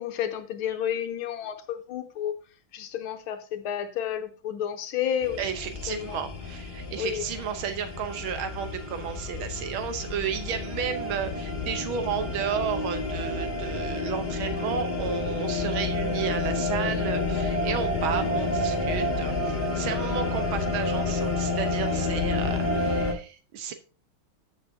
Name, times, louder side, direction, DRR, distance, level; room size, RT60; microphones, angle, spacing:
voice 1, 0.0-2.4 2.7-5.5 5.9-6.3 7.0-7.3, left 9 dB, 80° left, 1.8 m, -31 dB
sound 1, 5.2-23.1, left 2 dB, 25° left, 2.0 m, -29 dB
voice 2, 5.4-23.7, right 7 dB, 80° right, 1.8 m, -33 dB
13.5 x 6.4 x 2.8 m
omnidirectional pair, 2.3 m